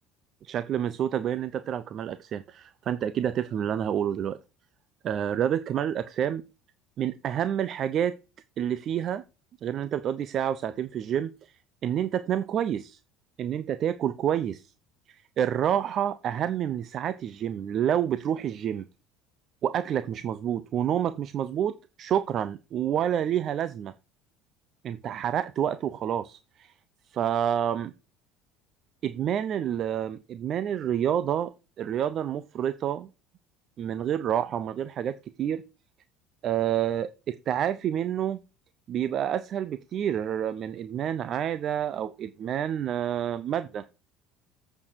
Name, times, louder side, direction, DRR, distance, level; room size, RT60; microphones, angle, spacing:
voice 1, 0.4-4.4 5.0-6.4 7.0-8.2 8.6-9.2 9.6-13.0 13.4-14.7 15.1-18.8 19.6-23.9 24.8-26.7 27.1-27.9 29.0-33.1 33.8-35.6 36.4-38.4 38.9-43.8, right 9 dB, 50° right, 14 dB, 0.6 m, -28 dB
8.4 x 6.8 x 4.5 m, 0.30 s
supercardioid pair, 95°, 0 cm